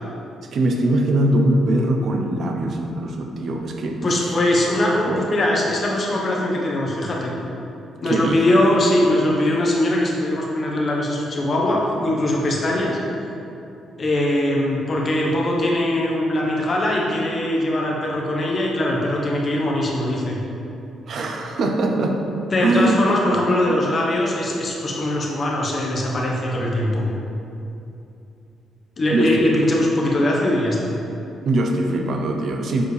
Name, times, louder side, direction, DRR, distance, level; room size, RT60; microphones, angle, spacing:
voice 1, 0.5-4.0 5.1-5.2 8.1-8.4 21.1-22.2 22.6-23.0 29.1-29.4 31.4-32.8, right 1 dB, 60° right, 3 dB, 0.7 m, -21 dB
voice 2, 4.0-7.3 8.0-13.0 14.0-20.4 22.5-27.1 29.0-30.9, left 1 dB, 40° left, -2 dB, 1.2 m, -21 dB
7.1 x 4.5 x 3.4 m, 2.7 s
cardioid pair, 90°, 0 cm